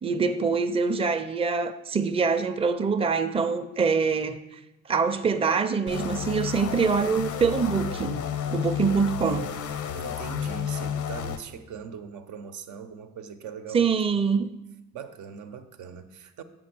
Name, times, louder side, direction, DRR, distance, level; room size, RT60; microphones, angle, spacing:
voice 1, 0.0-4.4 4.9-8.2 8.5-9.5 13.7-14.5, right 5 dB, 20° right, 0.5 m, -24 dB
sound 1, 5.9-11.4, left 8 dB, 75° left, 0.7 m, -31 dB
voice 2, 9.9-14.0 14.9-16.4, right 7 dB, 80° right, 0.7 m, -40 dB
7.5 x 5.2 x 6.0 m
cardioid pair, 90°, 30 cm